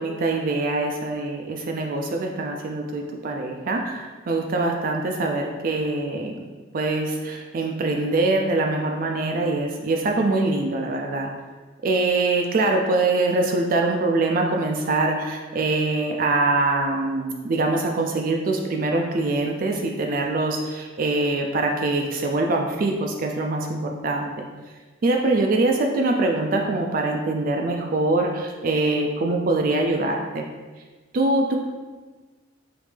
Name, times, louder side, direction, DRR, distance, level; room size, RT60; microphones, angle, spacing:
voice 1, 0.0-6.3 6.7-11.3 11.8-24.3 25.0-30.4 31.1-31.6, right 2 dB, 45° right, 2 dB, 0.3 m, -23 dB
5.0 x 3.1 x 3.3 m, 1.3 s
head